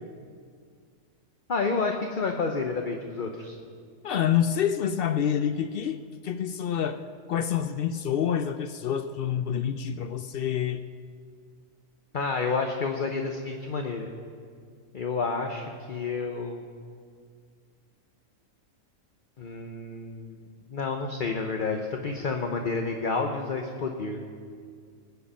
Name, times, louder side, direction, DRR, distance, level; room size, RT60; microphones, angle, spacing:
voice 1, 1.5-3.6 12.1-14.1 14.9-16.6 19.4-20.4 20.7-24.2, left 4 dB, 45° left, 3 dB, 0.9 m, -30 dB
voice 2, 4.0-7.0 7.3-10.8, left 9 dB, 65° left, 10 dB, 0.5 m, -27 dB
20.0 x 8.2 x 5.6 m, 2.1 s
omnidirectional pair, 1.4 m